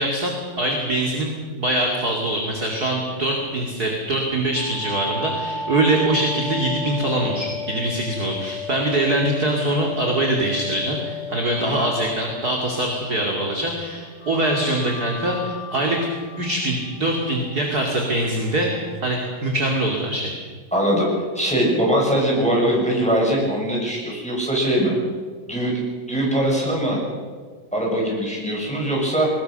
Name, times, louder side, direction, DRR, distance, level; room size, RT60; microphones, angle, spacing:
voice 1, 0.0-16.0 16.4-18.7 19.0-20.4, right 1 dB, 30° right, 0 dB, 2.5 m, -23 dB
sound 1, 4.5-13.3 14.2-19.0, left 4 dB, 45° left, 1.3 m, -34 dB
voice 2, 20.7-21.1 21.3-24.9 25.5-25.8 26.1-27.0 27.7-29.3, right 1 dB, ahead, -3 dB, 6.9 m, -21 dB
22.5 x 20.5 x 6.7 m, 1.5 s
omnidirectional pair, 4.0 m